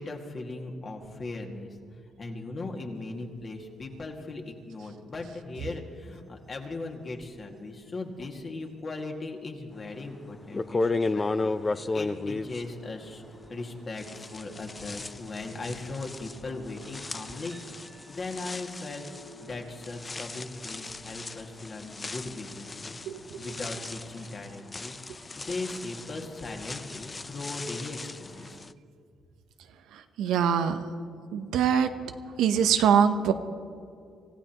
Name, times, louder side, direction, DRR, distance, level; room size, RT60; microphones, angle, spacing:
voice 1, 0.0-1.8 2.2-13.2 13.5-17.6 18.1-19.1 19.4-23.0 23.4-28.6, left 2 dB, 40° left, 2 dB, 2.1 m, -38 dB
sound 1, 2.9-19.6, equal, 40° right, 1.9 m, -57 dB
sound 2, 10.0-10.1 10.5-13.7 14.0-28.7, left 3 dB, 25° left, 0.5 m, -35 dB
voice 2, 23.1-23.8 29.9-30.8 31.3-33.3, right 8 dB, 85° right, 8 dB, 0.9 m, -25 dB
26.0 x 15.5 x 3.0 m, 2.4 s
cardioid pair, 90°, 0 cm